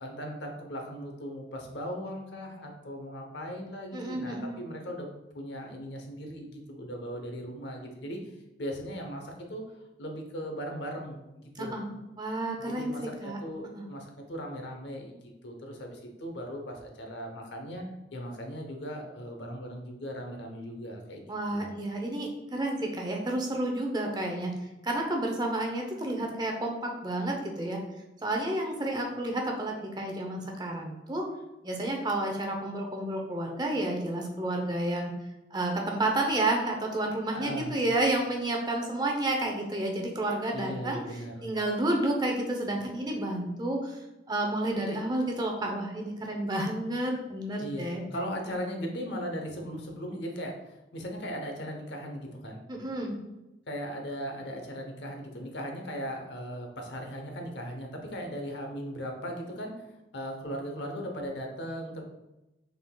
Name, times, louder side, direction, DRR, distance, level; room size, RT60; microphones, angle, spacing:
voice 1, 0.0-5.1 5.3-8.2 8.6-9.6 10.0-11.7 12.6-17.8 18.1-21.2 21.5-21.8 37.3-37.8 40.5-41.5 47.6-52.6 53.7-59.9 60.1-62.0, equal, 70° left, 2 dB, 0.8 m, -38 dB
voice 2, 3.9-4.6 11.6-11.9 12.2-12.9 13.2-13.4 13.7-13.8 21.3-24.5 24.8-27.8 28.2-31.2 31.6-35.1 35.5-41.0 41.4-48.3 52.7-53.2, right 1 dB, 20° right, 1 dB, 0.7 m, -30 dB
5.8 x 3.7 x 2.3 m, 0.98 s
head